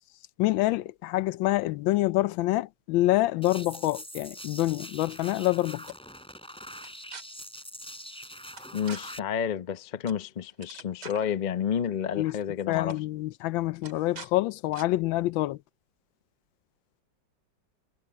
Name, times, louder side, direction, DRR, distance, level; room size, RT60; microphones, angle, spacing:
voice 1, 0.4-5.9 12.2-12.4 12.7-15.6, left 17 dB, 85° left, 1.3 m, -26 dB
sound 1, 3.4-9.2, equal, 5° left, 6.5 m, -44 dB
sound 2, 5.1-5.5 5.9-6.0 6.8-7.2 8.6-9.0 10.1-10.2 10.5-11.3 12.3-12.4 12.7-13.0 13.8-14.3 14.7-14.9, right 5 dB, 60° right, 2.9 m, -45 dB
voice 2, 8.7-13.0, left 8 dB, 50° left, 0.5 m, -30 dB
omnidirectional pair, 2.1 m